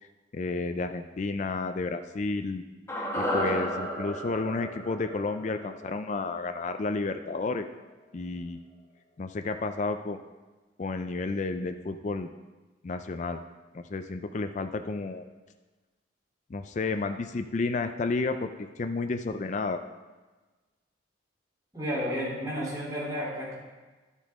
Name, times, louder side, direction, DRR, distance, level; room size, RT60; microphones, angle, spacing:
voice 1, 0.3-2.6 3.1-7.7 8.1-8.6 9.2-10.2 10.8-12.3 12.8-13.4 13.7-15.2 16.5-18.5 18.8-19.8, left 3 dB, 40° left, 7 dB, 0.4 m, -31 dB
sound 1, 2.9-7.2 7.5-7.6, equal, 15° left, 1.2 m, -33 dB
voice 2, 21.7-23.5, equal, 20° right, -7 dB, 3.3 m, -32 dB
11.5 x 8.2 x 3.6 m, 1.3 s
head